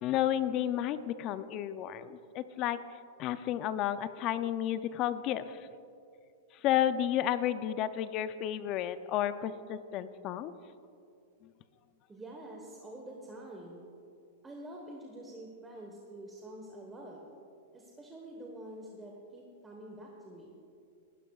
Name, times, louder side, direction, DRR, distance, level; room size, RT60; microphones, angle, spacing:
voice 1, 0.0-2.8 3.2-5.7 6.6-10.5, left 11 dB, 40° left, 13 dB, 0.5 m, -32 dB
voice 2, 12.1-13.8 14.4-17.3 17.7-20.5, right 1 dB, 10° right, -1 dB, 1.2 m, -47 dB
19.5 x 12.5 x 2.4 m, 2.6 s
hypercardioid pair, 135°, 0 cm